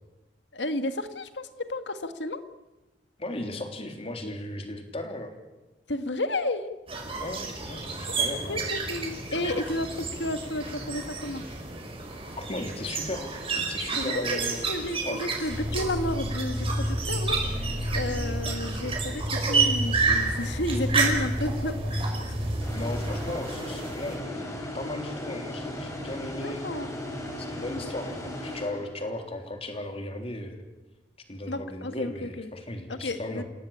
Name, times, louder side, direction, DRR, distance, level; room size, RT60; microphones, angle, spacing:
voice 1, 0.5-2.4 5.9-6.7 8.5-11.5 14.0-22.2 26.4-26.9 28.2-28.4 31.5-32.5 32.9-33.4, left 1 dB, 85° left, 9 dB, 1.9 m, -32 dB
voice 2, 3.2-5.3 7.2-8.9 12.4-14.7 15.0-15.3 22.7-26.7 27.4-30.6 31.3-33.4, left 1 dB, 35° left, 5 dB, 3.5 m, -36 dB
sound 1, 6.9-24.2, right 4 dB, 30° right, 5.1 m, -31 dB
sound 2, 15.5-23.3, equal, ahead, 4.5 m, -31 dB
sound 3, 22.6-29.3, left 1 dB, 20° left, 4.8 m, -37 dB
29.0 x 17.5 x 8.8 m, 1.1 s
head